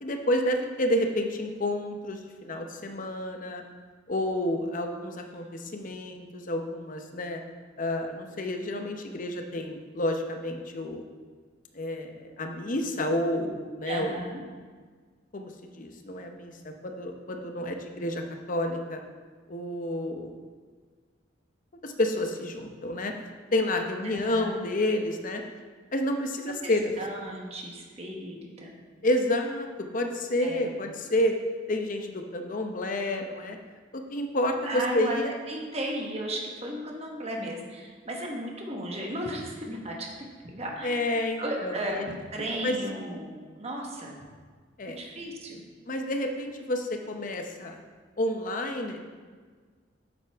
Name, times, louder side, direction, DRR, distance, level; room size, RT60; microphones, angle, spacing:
voice 1, 0.0-3.6 4.1-7.4 7.8-11.0 11.7-14.2 15.3-18.2 18.5-19.0 19.5-20.3 21.8-23.1 23.5-25.4 25.9-26.9 29.0-29.7 29.9-31.3 31.7-33.6 33.9-35.3 40.8-42.0 42.6-42.7 44.8-45.0 45.9-47.8 48.2-49.0, left 1 dB, 45° left, 5 dB, 0.8 m, -29 dB
voice 2, 13.8-14.4 24.1-24.5 26.6-26.7 27.0-28.7 30.4-30.7 34.6-35.2 35.5-40.1 40.4-41.1 41.4-44.1 45.0-45.6, right 1 dB, 35° right, 0 dB, 1.3 m, -35 dB
8.0 x 7.8 x 3.5 m, 1.6 s
head